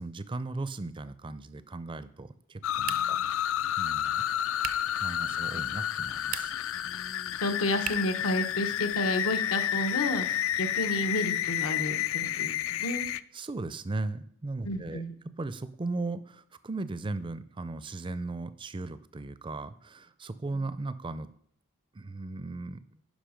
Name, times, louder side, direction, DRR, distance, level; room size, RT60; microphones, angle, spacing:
voice 1, 0.0-3.2 3.8-4.2 5.0-6.5 13.3-15.0 15.4-21.3 21.9-23.0, right 2 dB, 25° right, 14 dB, 0.4 m, -37 dB
sound 1, 2.6-13.2, left 11 dB, 65° left, 0.3 m, -30 dB
sound 2, 2.8-3.3 4.6-5.0 6.2-6.7 7.8-8.2, right 10 dB, 75° right, 0.6 m, -38 dB
voice 2, 2.9-3.4 6.7-13.0 14.6-15.1, left 1 dB, 80° left, 7 dB, 1.1 m, -32 dB
10.5 x 5.7 x 5.1 m, 0.66 s
head